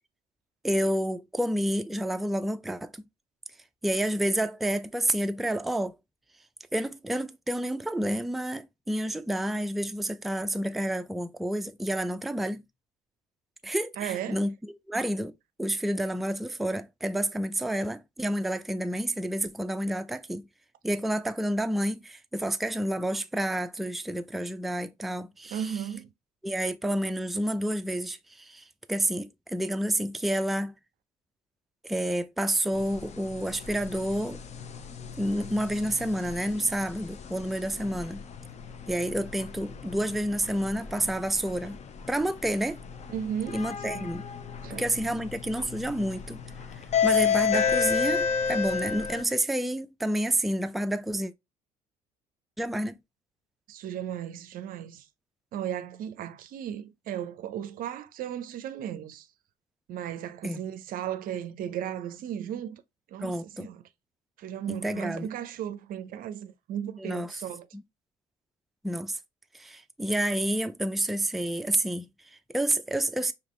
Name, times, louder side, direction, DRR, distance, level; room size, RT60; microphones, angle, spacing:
voice 1, 0.6-3.1 3.8-6.0 6.7-12.6 13.6-15.3 15.6-20.5 20.8-25.7 26.4-30.7 31.8-34.4 35.2-38.2 38.9-41.8 42.1-42.8 43.5-44.2 44.8-46.4 47.0-51.3 52.6-53.0 60.4-60.6 63.2-63.7 64.7-65.3 67.0-67.4 67.7-67.8 68.8-69.2 69.5-73.3, right 1 dB, ahead, 0.4 m, -29 dB
voice 2, 14.0-14.4 25.5-26.1 43.1-44.1 44.6-44.8 53.7-55.1 55.5-59.3 59.9-62.8 63.1-63.8 64.4-67.7, right 10 dB, 55° right, 0.5 m, -35 dB
sound 1, 32.7-49.2, left 7 dB, 40° left, 0.7 m, -32 dB
5.0 x 2.9 x 3.1 m
figure-of-eight pair, 50°, 18 cm